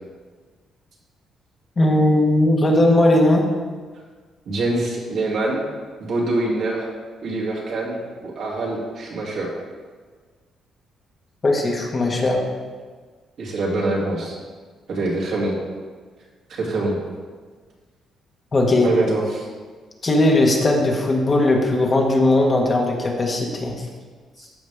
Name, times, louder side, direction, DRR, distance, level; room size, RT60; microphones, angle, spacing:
voice 1, 1.8-3.5 11.4-12.4 18.5-18.9 20.0-23.8, left 1 dB, 35° left, 0 dB, 1.6 m, -18 dB
voice 2, 4.5-5.6 6.0-6.9 7.2-9.5 13.4-14.4 14.9-15.6 16.5-17.0 18.8-19.5 24.4-24.5, right 2 dB, 65° right, -4 dB, 2.8 m, -24 dB
14.0 x 5.3 x 3.6 m, 1.5 s
cardioid pair, 90°, 0 cm